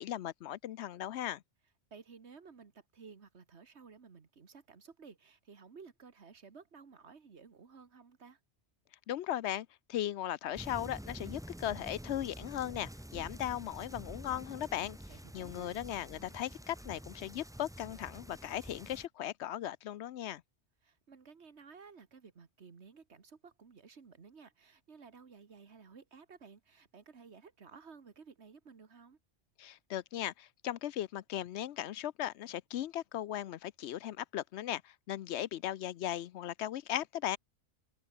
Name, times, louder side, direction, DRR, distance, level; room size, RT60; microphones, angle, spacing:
voice 1, 0.0-1.4 9.1-15.0 15.3-20.4 29.6-37.4, left 12 dB, 75° left, 0.9 m, -37 dB
voice 2, 1.9-8.4 15.1-15.7 20.8-29.2, right 5 dB, 70° right, 1.9 m, -55 dB
sound 1, 10.5-19.1, right 1 dB, 5° right, 0.5 m, -48 dB
omnidirectional pair, 1.2 m